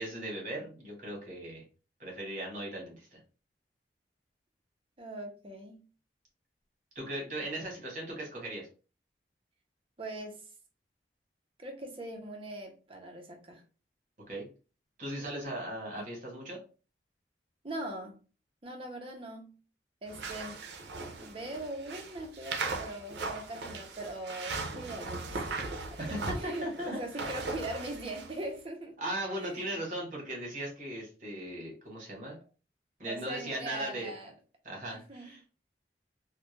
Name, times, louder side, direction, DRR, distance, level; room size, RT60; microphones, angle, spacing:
voice 1, 0.0-1.6 2.0-3.2 6.9-8.7 14.3-14.5 15.0-16.6 26.0-27.0 27.3-27.4 29.0-32.4 33.0-34.1 34.6-35.5, right 1 dB, 45° right, 1.1 m, -38 dB
voice 2, 5.0-5.8 7.4-7.7 10.0-10.4 11.6-13.6 16.0-16.1 17.6-18.1 18.6-19.5 20.0-20.7 21.0-28.9 29.4-29.7 33.0-34.3 34.9-35.3, right 1 dB, 30° right, 0.5 m, -41 dB
sound 1, 20.1-28.4, right 3 dB, 80° right, 0.5 m, -38 dB
2.3 x 2.1 x 3.0 m
head